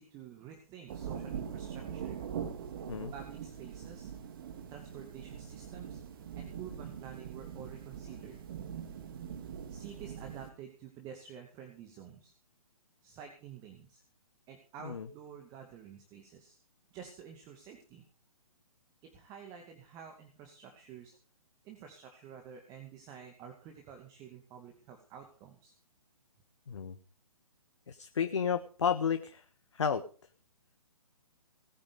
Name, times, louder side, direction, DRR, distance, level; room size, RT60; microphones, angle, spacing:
voice 1, 0.0-2.2 3.1-4.1 4.7-6.0 6.4-8.4 9.7-12.3 13.0-14.0 14.5-16.6 16.9-18.0 19.0-21.2 21.6-25.7, right 8 dB, 20° right, 4 dB, 2.4 m, -50 dB
sound 1, 0.9-10.5, right 8 dB, 35° right, 2.3 m, -42 dB
voice 2, 26.7-27.0 27.9-29.4 29.7-30.0, left 7 dB, 50° left, 9 dB, 1.5 m, -32 dB
19.5 x 10.5 x 5.3 m, 0.39 s
figure-of-eight pair, 135°, 19 cm